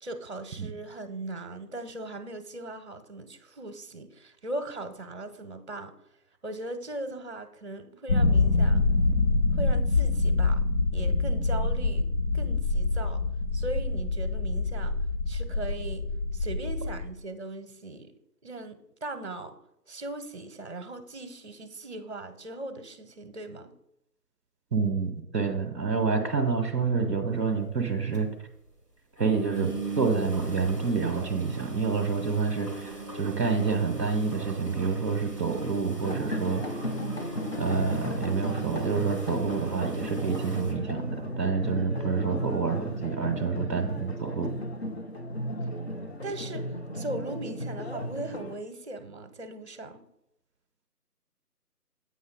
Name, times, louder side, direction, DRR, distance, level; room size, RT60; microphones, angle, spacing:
voice 1, 0.0-5.9 6.4-8.9 9.5-10.6 10.9-12.1 12.3-13.2 13.5-15.0 15.3-16.1 16.3-18.1 18.4-19.6 19.9-23.7 46.2-46.6 46.9-50.0, right 2 dB, 45° right, 9 dB, 0.9 m, -39 dB
sound 1, 8.1-17.1, left 3 dB, 65° left, 1.3 m, -25 dB
voice 2, 24.7-28.3 29.2-29.7 30.0-36.7 37.6-44.5, right 5 dB, 20° right, 3 dB, 0.9 m, -28 dB
sound 2, 27.4-27.5 27.8-27.9 28.1-28.2 28.5-28.7 29.2-40.7, right 2 dB, 20° left, 0.9 m, -38 dB
sound 3, 36.0-48.6, equal, 45° left, 0.6 m, -35 dB
8.0 x 5.6 x 3.9 m, 0.80 s
figure-of-eight pair, 160°, 47 cm